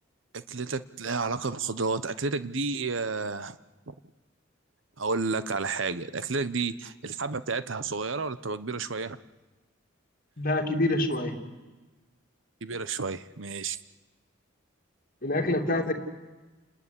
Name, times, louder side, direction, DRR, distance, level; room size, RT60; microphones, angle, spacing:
voice 1, 0.3-3.6 3.9-4.0 5.0-9.2 12.6-13.8, right 4 dB, 70° right, 14 dB, 1.0 m, -31 dB
voice 2, 10.4-11.4 15.2-15.9, left 1 dB, 45° left, 4 dB, 2.8 m, -26 dB
30.0 x 20.0 x 9.9 m, 1.2 s
head